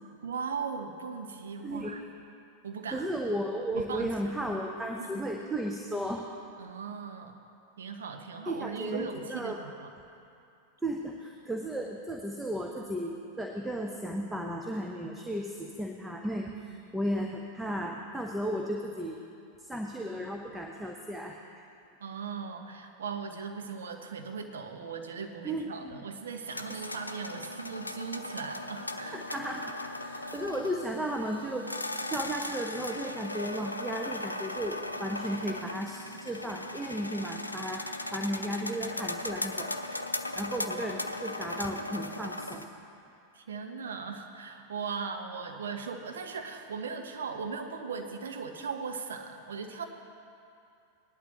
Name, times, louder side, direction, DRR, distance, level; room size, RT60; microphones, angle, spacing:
voice 1, 0.2-2.0 2.6-3.1 3.7-4.3 5.0-5.1 6.6-7.4 7.8-9.9 16.6-16.8 22.0-29.2 43.3-49.9, right 5 dB, 65° right, 4 dB, 1.0 m, -38 dB
voice 2, 1.6-1.9 2.9-6.3 8.5-9.6 10.8-19.2 19.6-21.4 25.4-26.0 29.1-29.7 30.0-31.7 32.1-39.7 40.0-42.7, right 1 dB, 5° right, 1 dB, 0.8 m, -34 dB
sound 1, 26.5-42.6, left 1 dB, 85° left, 0.5 m, -38 dB
19.0 x 11.5 x 3.1 m, 2.6 s
figure-of-eight pair, 90°, 0 cm